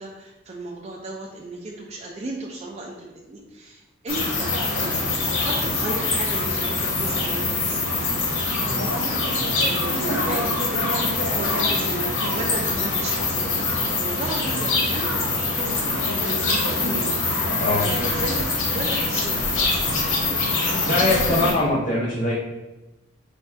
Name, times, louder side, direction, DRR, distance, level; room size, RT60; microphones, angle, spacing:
voice 1, 0.0-8.2 8.5-9.2 9.6-10.9 11.3-13.6 14.0-17.2 17.9-20.0, right 1 dB, 30° right, -2 dB, 0.4 m, -35 dB
sound 1, 4.1-21.5, left 2 dB, 80° left, 0.9 m, -24 dB
voice 2, 20.8-22.3, left 2 dB, 35° left, -7 dB, 0.7 m, -22 dB
3.4 x 2.3 x 4.2 m, 1.1 s
head